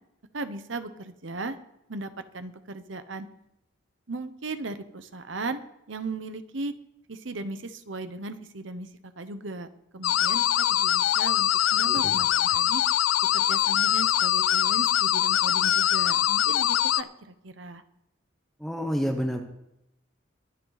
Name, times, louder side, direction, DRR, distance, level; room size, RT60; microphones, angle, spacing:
voice 1, 0.3-1.6 1.9-3.3 4.1-5.6 5.9-6.7 7.1-8.9 9.2-9.7 9.9-12.8 13.3-17.8, right 3 dB, 75° right, 11 dB, 1.0 m, -37 dB
sound 1, 10.0-17.0, left 11 dB, 90° left, 0.4 m, -23 dB
voice 2, 18.6-19.4, equal, ahead, 3 dB, 1.1 m, -29 dB
22.5 x 7.6 x 4.1 m, 0.83 s
head